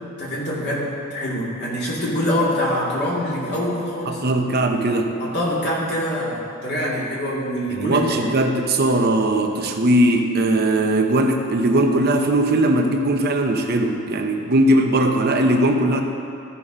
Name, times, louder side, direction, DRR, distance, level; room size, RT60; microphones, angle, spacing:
voice 1, 0.2-4.2 5.2-8.1, left 1 dB, 50° left, -6 dB, 2.4 m, -24 dB
voice 2, 4.1-5.1 7.7-16.0, right 1 dB, 45° right, 4 dB, 0.8 m, -19 dB
14.0 x 5.8 x 5.0 m, 2.7 s
head